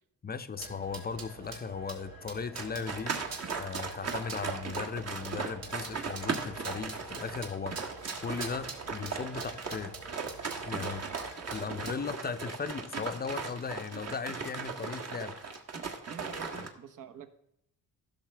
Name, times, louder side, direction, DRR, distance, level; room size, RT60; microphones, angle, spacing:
voice 1, 0.2-3.1 3.5-7.8 8.2-9.9 10.6-11.0 11.5-15.6 16.6-16.7, left 5 dB, 25° left, 10 dB, 0.6 m, -37 dB
sound 1, 0.6-12.0, right 4 dB, 75° right, 2.3 m, -45 dB
sound 2, 2.5-16.7, right 5 dB, 45° right, 1.5 m, -38 dB
voice 2, 16.1-17.3, right 7 dB, 60° right, 7 dB, 1.2 m, -46 dB
15.0 x 6.5 x 3.4 m, 0.76 s
cardioid pair, 120°, 35 cm